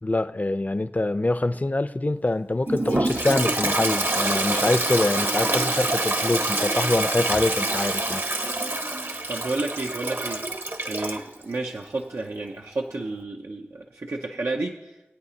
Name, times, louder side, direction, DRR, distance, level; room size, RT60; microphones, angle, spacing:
voice 1, 0.0-8.2, left 2 dB, 35° left, 12 dB, 0.5 m, -25 dB
Toilet flush, 2.7-11.2, right 2 dB, 60° right, 1.0 m, -26 dB
voice 2, 9.3-10.4 10.9-14.9, right 2 dB, 80° right, 0 dB, 0.7 m, -31 dB
21.5 x 8.9 x 2.8 m, 1.0 s
wide cardioid pair, 50°, 5 cm